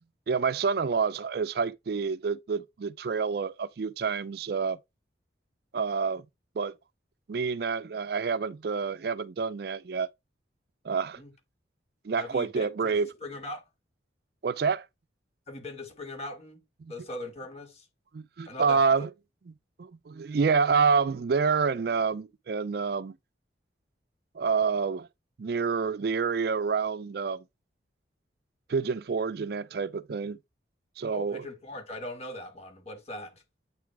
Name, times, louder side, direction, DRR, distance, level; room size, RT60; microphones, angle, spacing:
voice 1, 0.3-4.8 5.7-6.2 6.6-6.7 7.3-10.1 10.8-11.2 12.0-13.1 14.4-14.9 16.8-16.9 18.1-19.1 19.5-19.6 19.8-23.1 24.4-25.1 25.4-27.4 28.7-30.4 31.0-31.5, right 5 dB, 55° right, 0.4 m, -28 dB
voice 2, 12.2-13.0 13.2-13.6 15.5-16.6 16.9-17.9 18.5-18.8 31.1-33.4, left 1 dB, 35° left, 1.9 m, -40 dB
8.4 x 3.8 x 4.5 m
head